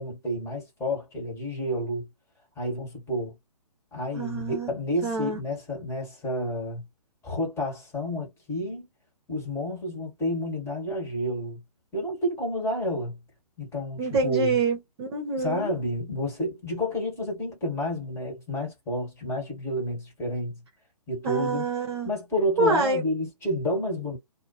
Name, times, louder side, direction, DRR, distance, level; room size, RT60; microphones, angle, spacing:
voice 1, 0.0-2.1 2.6-3.4 3.9-6.9 7.2-8.9 9.3-11.6 11.9-13.2 13.6-14.6 15.4-20.6 21.1-21.6 22.1-24.2, equal, 15° left, 1.7 m, -30 dB
voice 2, 4.1-4.7 5.0-5.4 14.0-15.8 21.2-22.1 22.6-23.0, right 3 dB, 40° right, 1.0 m, -26 dB
2.8 x 2.2 x 2.8 m
figure-of-eight pair, 130°, 21 cm